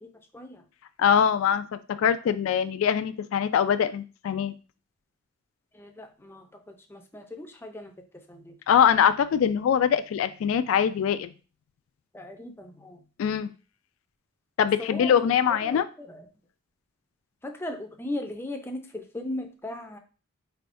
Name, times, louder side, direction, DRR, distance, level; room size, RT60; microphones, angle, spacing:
voice 1, 1.0-1.6 2.0-4.5 8.7-11.3 13.2-13.5 14.6-15.9, left 8 dB, 75° left, 12 dB, 0.3 m, -23 dB
voice 2, 5.7-6.4 6.9-7.9 8.3-8.6 12.1-13.0 14.8-15.3 15.6-16.2 17.4-20.0, left 1 dB, 10° left, 5 dB, 0.5 m, -37 dB
4.4 x 3.4 x 2.5 m, 0.35 s
head